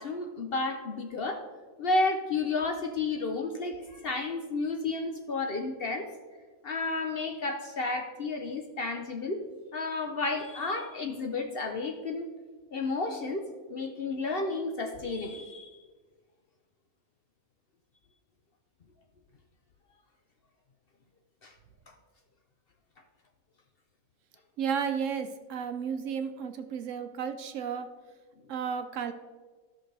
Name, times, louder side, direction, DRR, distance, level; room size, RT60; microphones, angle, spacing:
voice 1, 0.0-1.4 1.8-6.1 6.6-9.4 9.7-12.3 12.7-13.4 13.7-15.7 21.4-21.5, left 3 dB, 50° left, 4 dB, 0.8 m, -31 dB
voice 2, 24.6-27.9 28.5-29.1, right 7 dB, 65° right, 8 dB, 1.0 m, -33 dB
14.0 x 6.0 x 3.3 m, 1.4 s
omnidirectional pair, 1.5 m